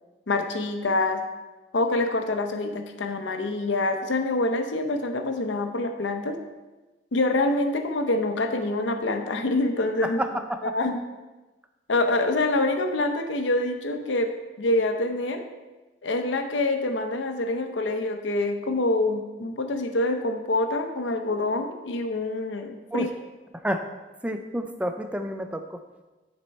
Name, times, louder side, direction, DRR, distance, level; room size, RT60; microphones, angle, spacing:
voice 1, 0.3-1.2 1.7-6.4 7.1-10.2 10.6-11.0 11.9-14.3 14.6-15.4 16.0-23.1, left 2 dB, 85° left, 6 dB, 0.7 m, -26 dB
voice 2, 10.0-10.6 22.9-23.1 23.6-23.8 24.2-25.8, right 1 dB, 5° right, 7 dB, 0.4 m, -29 dB
9.6 x 4.4 x 4.2 m, 1.2 s
head